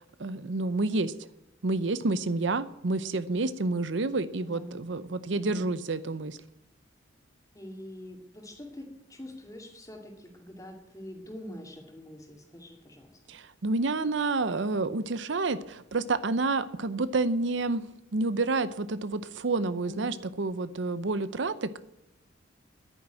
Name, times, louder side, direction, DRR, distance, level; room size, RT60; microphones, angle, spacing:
voice 1, 0.2-1.1 1.6-6.4 13.3-17.8 18.1-21.8, right 3 dB, 70° right, 14 dB, 0.7 m, -29 dB
voice 2, 4.4-4.8 5.3-5.7 7.5-13.3 19.8-20.1, equal, 15° left, 3 dB, 2.4 m, -45 dB
10.5 x 9.4 x 8.9 m, 0.87 s
head